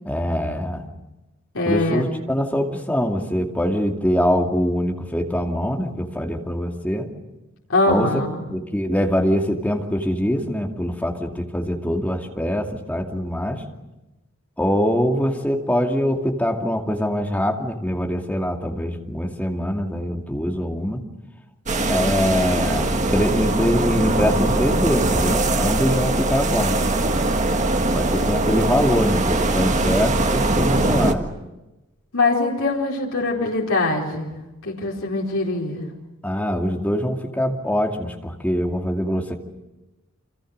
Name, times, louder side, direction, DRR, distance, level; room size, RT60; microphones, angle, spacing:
voice 1, 0.0-0.8 1.7-7.1 7.9-8.2 8.5-13.6 14.6-21.0 21.8-26.8 27.9-31.2 36.2-39.4, equal, 5° left, 2 dB, 2.4 m, -23 dB
voice 2, 1.5-2.0 7.7-8.4 32.1-35.9, left 2 dB, 70° left, -3 dB, 4.5 m, -22 dB
sound 1, 21.7-31.1, right 2 dB, 35° right, 1.7 m, -21 dB
29.0 x 26.0 x 6.6 m, 1.0 s
head